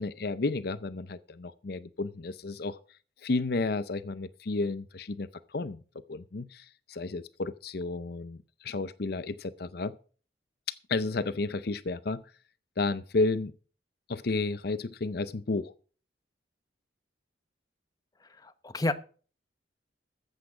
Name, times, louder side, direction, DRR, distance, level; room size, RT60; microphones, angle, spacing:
voice 1, 0.0-2.8 3.2-5.3 5.5-5.8 6.1-10.0 10.9-12.2 12.8-13.5 14.1-15.7, left 3 dB, 55° left, 0.6 m, -32 dB
voice 2, 18.4-18.9, left 2 dB, 20° left, 0.8 m, -29 dB
14.0 x 8.3 x 4.9 m
head